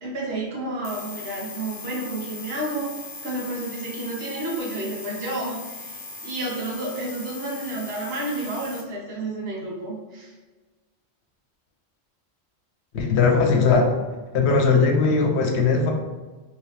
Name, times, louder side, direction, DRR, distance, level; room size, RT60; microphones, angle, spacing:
voice 1, 0.0-2.9 3.2-10.3, right 2 dB, 70° right, -5 dB, 1.2 m, -31 dB
sound 1, 0.8-8.8, left 3 dB, 60° left, 0.7 m, -39 dB
voice 2, 12.9-14.0 14.3-15.9, left 4 dB, 90° left, 2 dB, 0.9 m, -19 dB
3.0 x 2.9 x 3.2 m, 1.3 s
omnidirectional pair, 1.1 m